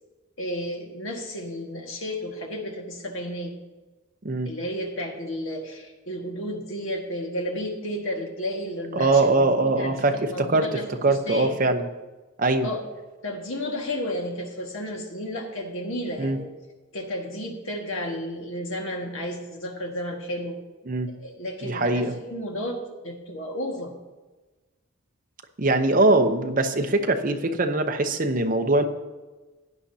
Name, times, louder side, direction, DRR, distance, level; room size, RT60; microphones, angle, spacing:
voice 1, 0.4-3.5 4.4-11.5 12.6-12.8 13.2-16.5 16.9-20.6 21.2-23.9, equal, 65° left, 1 dB, 1.8 m, -32 dB
voice 2, 8.9-10.7 11.0-11.8 12.4-12.7 16.2-16.4 20.9-21.1 21.6-22.1 25.6-28.8, right 2 dB, 40° right, 6 dB, 0.8 m, -22 dB
16.0 x 10.0 x 2.8 m, 1.2 s
head